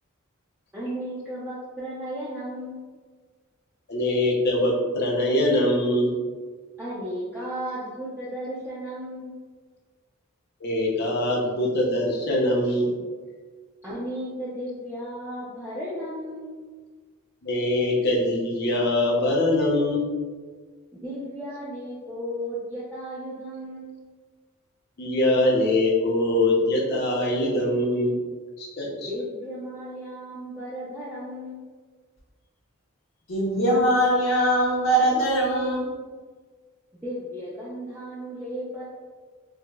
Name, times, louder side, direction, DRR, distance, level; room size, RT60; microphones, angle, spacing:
voice 1, 0.7-2.9 6.8-9.3 13.8-16.5 20.9-24.0 29.0-31.6 37.0-38.8, equal, 10° right, -10 dB, 0.5 m, -34 dB
voice 2, 3.9-6.1 10.6-12.9 17.4-20.1 25.0-28.1 28.6-29.1, left 1 dB, 50° left, -2 dB, 0.6 m, -23 dB
voice 3, 33.3-35.8, right 1 dB, 75° left, -5 dB, 1.1 m, -21 dB
4.6 x 2.1 x 2.3 m, 1.5 s
head